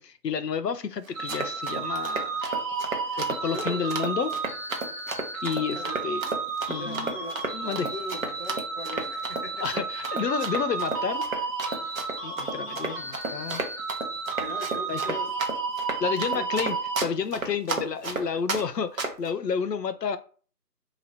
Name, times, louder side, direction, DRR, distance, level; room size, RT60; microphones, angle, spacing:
voice 1, 0.0-2.5 3.2-4.3 5.4-6.3 6.7-7.2 7.5-7.9 9.6-11.5 12.2-13.6 14.9-15.0 16.0-16.8 17.0-20.2, left 6 dB, 80° left, 0.6 m, -30 dB
sound 1, 1.1-17.0, right 5 dB, 10° right, 1.4 m, -32 dB
Run, 1.1-18.6 19.0-19.3, right 3 dB, 55° right, 0.9 m, -32 dB
voice 2, 3.5-4.0 5.7-6.0 6.8-9.6 9.9-10.1 14.4-15.6 16.2-16.5, left 1 dB, 35° left, 0.5 m, -40 dB
3.0 x 2.8 x 4.1 m
figure-of-eight pair, 165°, 49 cm